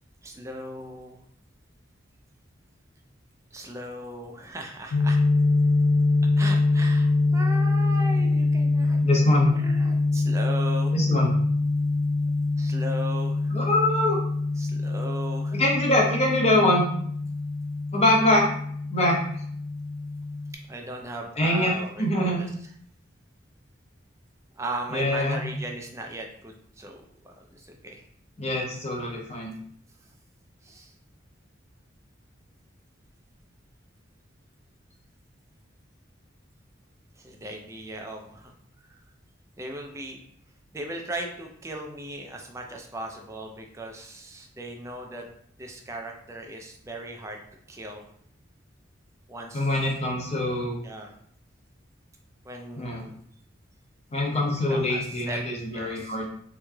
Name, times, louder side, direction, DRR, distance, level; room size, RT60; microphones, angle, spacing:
voice 1, 0.2-1.2 3.5-5.2 6.4-11.0 12.6-13.6 14.6-15.6 20.7-22.5 24.5-28.0 30.6-30.9 37.2-38.5 38.9-39.0 39.6-40.2 40.7-45.3 45.6-47.4 47.7-48.0 49.3-49.7 50.8-51.1 52.4-53.1 54.5-55.4 55.7-56.2, right 1 dB, 15° right, 2 dB, 0.4 m, -38 dB
sound 1, 4.9-20.5, left 3 dB, 85° left, 0.4 m, -24 dB
voice 2, 9.0-9.5 10.9-11.3 13.5-14.2 15.5-16.8 17.9-18.4 18.9-19.2 21.4-21.7 22.0-22.4 24.9-25.4 28.4-29.5 49.5-50.8 52.8-53.0 54.1-56.3, left 1 dB, 35° left, -2 dB, 0.8 m, -23 dB
3.6 x 3.1 x 2.2 m, 0.65 s
head